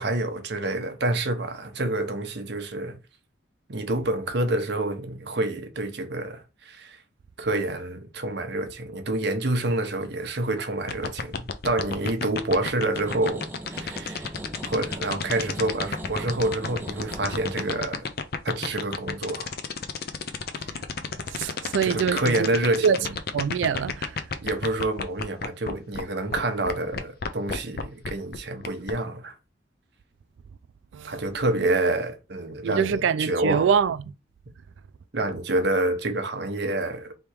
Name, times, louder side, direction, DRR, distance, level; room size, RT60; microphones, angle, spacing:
voice 1, 0.0-3.0 3.7-7.0 7.4-13.4 13.7-14.3 14.6-18.1 18.4-19.5 21.8-23.1 24.4-29.3 31.0-33.7 35.1-37.1, right 2 dB, 60° right, 0.8 m, -28 dB
sound 1, 10.9-26.0 26.3-26.4 26.7-28.9, left 5 dB, 50° left, 0.5 m, -30 dB
sound 2, 13.0-21.2 21.7-22.2, right 1 dB, 10° right, 0.4 m, -40 dB
voice 2, 21.3-22.6 22.8-23.0 23.3-24.2 30.9-31.2 32.6-34.0, right 6 dB, 80° right, 0.3 m, -24 dB
3.4 x 2.9 x 4.5 m
head